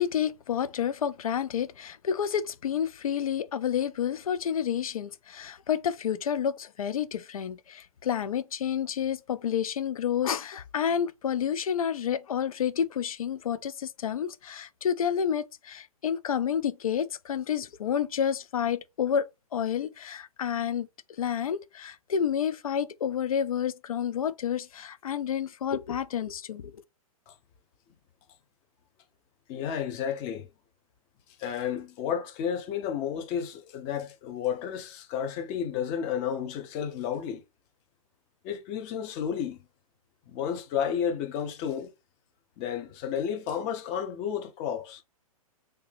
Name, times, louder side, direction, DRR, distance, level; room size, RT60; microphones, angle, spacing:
voice 1, 0.0-19.3 19.5-20.9 21.2-26.7, left 8 dB, 70° left, 0.4 m, -29 dB
voice 2, 29.5-30.5 31.4-37.4 38.4-39.6 40.3-41.9 42.6-45.0, left 8 dB, 30° left, 0.7 m, -32 dB
3.3 x 2.7 x 3.3 m
figure-of-eight pair, 115°, 19 cm